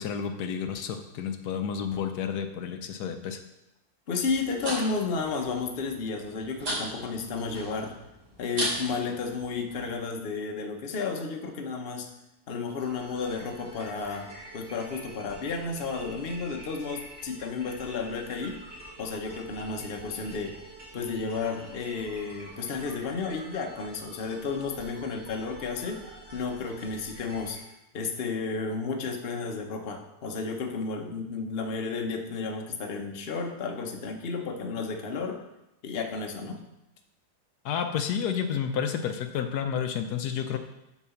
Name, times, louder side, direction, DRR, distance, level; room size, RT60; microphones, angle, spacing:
voice 1, 0.0-3.4 37.6-40.6, left 7 dB, 80° left, 7 dB, 1.2 m, -30 dB
voice 2, 4.1-7.9 8.4-12.1 12.5-18.6 19.0-20.6 20.9-27.6 27.9-35.4 35.8-36.6, left 4 dB, 45° left, 3 dB, 1.0 m, -32 dB
sound 1, 4.2-10.0, right 1 dB, 75° right, 3.4 m, -37 dB
sound 2, 12.5-27.6, right 1 dB, 50° right, 3.3 m, -47 dB
7.2 x 4.8 x 7.0 m, 0.92 s
omnidirectional pair, 1.7 m